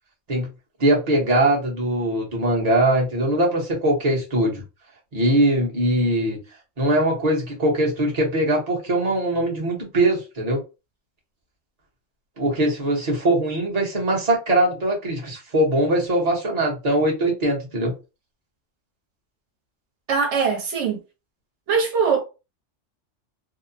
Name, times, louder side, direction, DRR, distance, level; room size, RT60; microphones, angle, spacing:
voice 1, 0.8-4.6 5.1-6.4 6.8-10.6 12.4-17.9, right 1 dB, 35° right, 0.9 m, -21 dB
voice 2, 20.1-21.0 21.7-22.2, right 5 dB, 65° right, 1.2 m, -21 dB
2.8 x 2.1 x 2.6 m
omnidirectional pair, 1.3 m